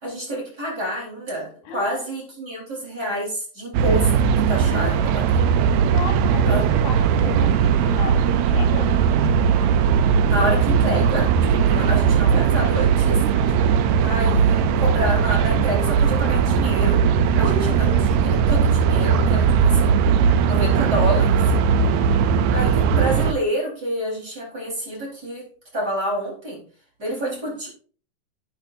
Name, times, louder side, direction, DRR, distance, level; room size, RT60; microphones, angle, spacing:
voice 1, 0.0-5.3 6.5-6.6 10.3-13.2 14.0-17.0 17.4-20.1 20.5-21.4 22.5-26.6 27.0-27.7, equal, 25° right, -4 dB, 4.5 m, -28 dB
voice 2, 1.7-2.1 4.6-5.0 5.9-9.0 13.3-13.9 14.3-15.0 17.4-17.9 22.0-22.1 22.7-23.0 27.1-27.4, left 4 dB, 75° left, 2 dB, 3.5 m, -35 dB
sound 1, 3.7-23.3, right 6 dB, 80° right, 1.6 m, -18 dB
11.5 x 9.2 x 2.6 m, 0.42 s
omnidirectional pair, 3.9 m